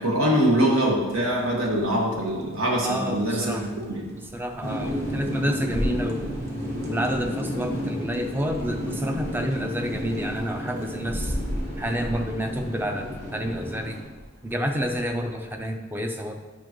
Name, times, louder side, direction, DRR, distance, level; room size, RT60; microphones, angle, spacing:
voice 1, 0.0-4.1, right 1 dB, 80° right, -2 dB, 1.6 m, -23 dB
sound 1, 0.9-15.7, equal, 50° right, 1.0 m, -39 dB
voice 2, 2.8-3.7 4.2-6.4 6.9-11.4 11.8-14.0 14.4-16.4, equal, 10° right, 5 dB, 0.4 m, -29 dB
sound 2, 4.6-14.0, equal, 35° right, 1.8 m, -32 dB
8.4 x 5.9 x 3.0 m, 1.4 s
head